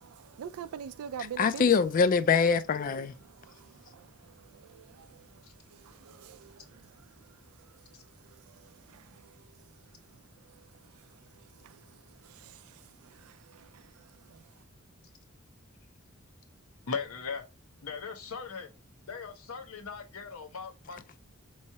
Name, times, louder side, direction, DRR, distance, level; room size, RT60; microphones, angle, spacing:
voice 1, 0.0-1.7 3.2-14.6, right 8 dB, 90° right, 0.4 m, -48 dB
voice 2, 1.4-3.1, left 5 dB, 40° left, 0.3 m, -24 dB
voice 3, 16.9-17.4 17.8-18.7 19.1-21.2, left 5 dB, 85° left, 0.8 m, -39 dB
4.5 x 3.1 x 2.7 m
head